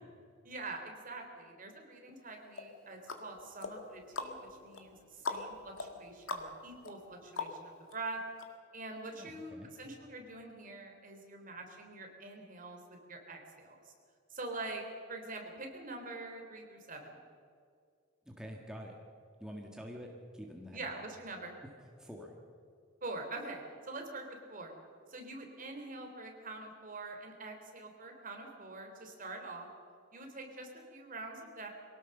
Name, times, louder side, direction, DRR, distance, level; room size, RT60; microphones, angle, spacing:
voice 1, 0.4-8.2 8.7-12.8 13.1-13.9 14.3-14.8 15.1-17.2 20.7-21.6 23.0-24.7 25.1-29.7 30.1-31.7, right 2 dB, 45° right, 3 dB, 3.4 m, -45 dB
sound 1, 2.5-7.9 8.4-8.5, left 3 dB, 85° left, 1.9 m, -42 dB
voice 2, 9.2-9.7 18.3-19.0 19.4-20.9 21.6-21.7 22.0-22.3, equal, 5° right, 0 dB, 1.7 m, -47 dB
23.5 x 17.5 x 6.7 m, 2.3 s
head